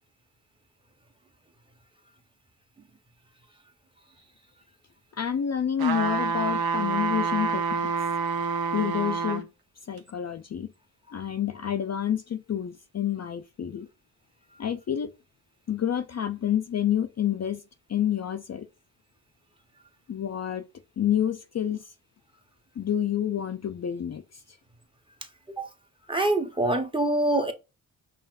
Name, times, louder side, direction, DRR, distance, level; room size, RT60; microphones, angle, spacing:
voice 1, 5.2-7.9 8.7-9.5 9.9-10.7 11.1-13.9 14.6-15.1 15.7-17.6 17.9-18.7 20.1-20.6 21.0-21.8 22.8-24.4, left 9 dB, 45° left, 0.4 m, -28 dB
sound 1, 5.8-9.5 10.0-10.1, right 5 dB, 65° right, 0.7 m, -27 dB
voice 2, 26.1-27.5, right 1 dB, 15° right, 0.8 m, -24 dB
5.6 x 2.5 x 2.4 m
cardioid pair, 60°, 39 cm